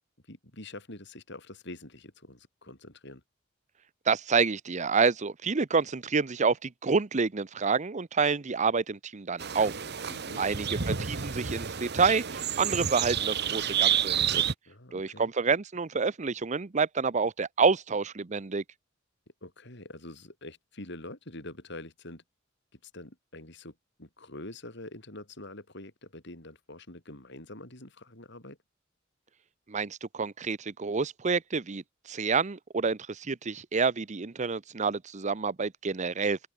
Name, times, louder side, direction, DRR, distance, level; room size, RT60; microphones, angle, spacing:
voice 1, 0.3-3.2 10.1-10.4 14.7-15.3 19.4-22.2 22.8-28.6, left 2 dB, 60° left, 6.6 m, -45 dB
voice 2, 4.1-9.7 10.4-14.4 14.9-18.6 29.7-36.4, right 5 dB, 40° right, 0.7 m, -28 dB
sound 1, 9.4-14.5, right 8 dB, 55° right, 1.3 m, -29 dB
open air
head